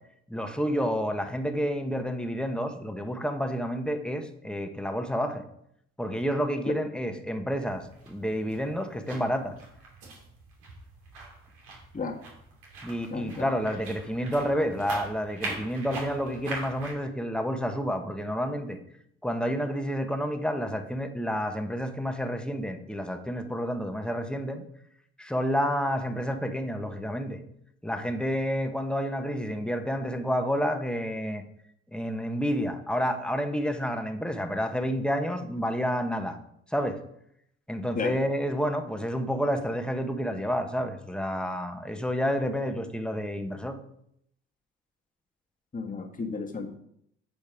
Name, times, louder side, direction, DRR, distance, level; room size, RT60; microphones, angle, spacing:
voice 1, 0.3-5.5 6.0-9.6 12.8-18.8 19.2-24.6 25.2-27.4 27.8-31.4 31.9-36.4 36.7-37.0 37.7-43.8, equal, 5° left, 5 dB, 1.3 m, -29 dB
sound 1, 7.6-16.9, right 3 dB, 80° right, 2.9 m, -42 dB
voice 2, 13.1-13.5 37.9-38.2 45.7-46.7, left 4 dB, 25° left, 2 dB, 1.6 m, -33 dB
9.0 x 5.2 x 5.0 m, 0.73 s
supercardioid pair, 60°, 30 cm